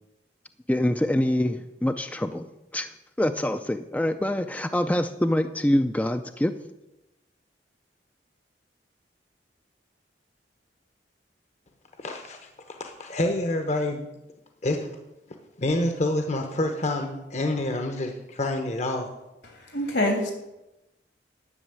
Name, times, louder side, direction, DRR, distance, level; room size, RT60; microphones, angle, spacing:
voice 1, 0.7-2.4 2.7-2.9 3.2-6.5, left 1 dB, 10° left, 9 dB, 0.4 m, -25 dB
voice 2, 12.0-14.0 14.6-14.9 15.6-19.1, left 1 dB, 40° left, 5 dB, 0.9 m, -27 dB
voice 3, 19.6-20.3, left 1 dB, 75° left, 3 dB, 3.0 m, -25 dB
11.0 x 6.3 x 8.9 m, 0.95 s
head